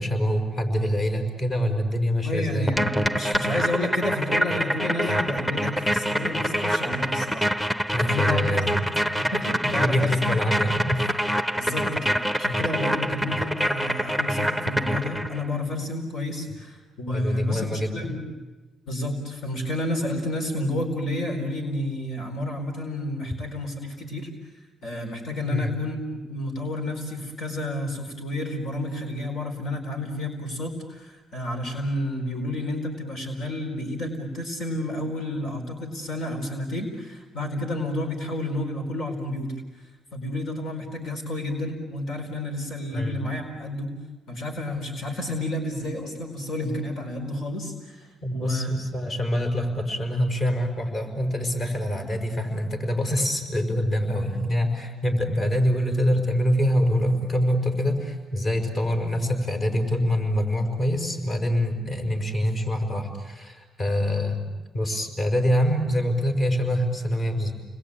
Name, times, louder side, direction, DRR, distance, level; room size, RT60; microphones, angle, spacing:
voice 1, 0.0-2.7 5.0-5.1 6.4-6.5 7.9-8.8 9.6-11.1 17.1-18.1 25.5-25.7 42.9-43.2 48.2-64.4 64.7-67.5, equal, 45° left, 5 dB, 5.6 m, -25 dB
voice 2, 2.2-7.5 8.0-10.1 11.6-18.2 18.9-24.5 24.8-43.9 44.3-48.7, left 1 dB, 70° left, 3 dB, 4.5 m, -30 dB
sound 1, 2.7-15.5, equal, 10° left, 1.0 m, -26 dB
30.0 x 21.5 x 8.8 m, 1.2 s
cardioid pair, 90°, 0 cm